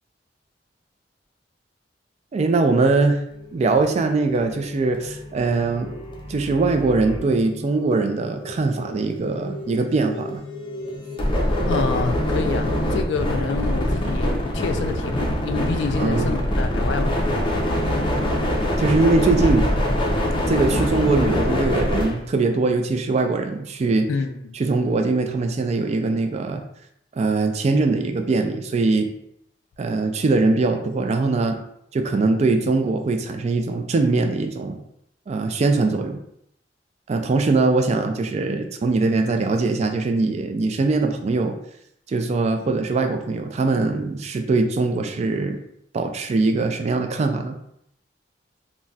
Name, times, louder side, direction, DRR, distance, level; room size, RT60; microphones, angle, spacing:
voice 1, 2.3-3.2 3.5-6.0 6.3-10.4 16.0-16.4 18.8-19.6 20.5-24.1 24.5-26.6 27.2-29.1 29.8-31.6 31.9-34.8 35.3-36.2 37.1-41.5 42.1-45.6 45.9-47.6, right 3 dB, 40° right, 0.3 m, -21 dB
sound 1, 3.3-22.2, left 1 dB, 30° left, 0.5 m, -25 dB
voice 2, 11.7-17.2 24.1-24.4, left 4 dB, 85° left, 0.3 m, -27 dB
3.8 x 2.1 x 2.3 m
head